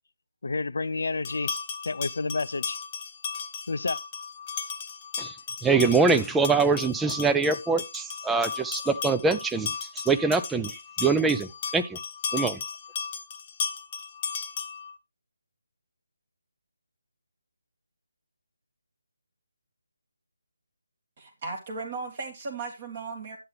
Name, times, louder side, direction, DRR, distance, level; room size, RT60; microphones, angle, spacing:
voice 1, 0.4-1.6 1.8-2.8 3.7-4.0, left 3 dB, 60° left, 0.6 m, -29 dB
sound 1, 1.2-14.9, left 6 dB, 30° left, 1.1 m, -35 dB
voice 2, 5.6-9.7 10.1-12.0 12.3-12.6, right 4 dB, 5° right, 0.5 m, -24 dB
voice 3, 21.2-23.4, right 4 dB, 40° right, 2.0 m, -36 dB
11.5 x 7.8 x 3.3 m
figure-of-eight pair, 155°, 0 cm